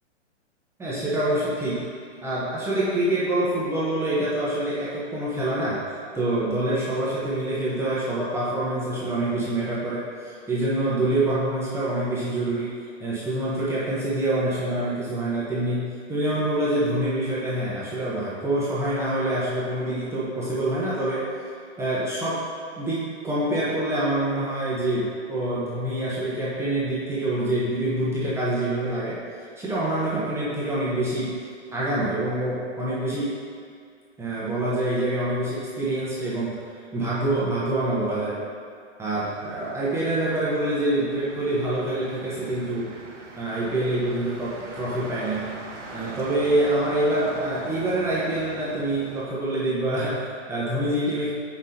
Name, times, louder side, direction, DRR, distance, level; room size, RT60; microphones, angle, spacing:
voice 1, 0.8-1.8 2.2-5.8 6.1-12.7 13.0-21.3 21.8-22.4 22.8-29.2 29.6-31.4 31.7-33.3 34.2-36.6 36.9-38.4 39.0-42.9 43.4-45.4 45.9-51.3, right 1 dB, 5° right, -9 dB, 0.9 m, -26 dB
Motor vehicle (road), 39.1-49.2, right 3 dB, 80° right, 1.0 m, -42 dB
7.0 x 5.8 x 2.8 m, 2.2 s
hypercardioid pair, 135°, 36 cm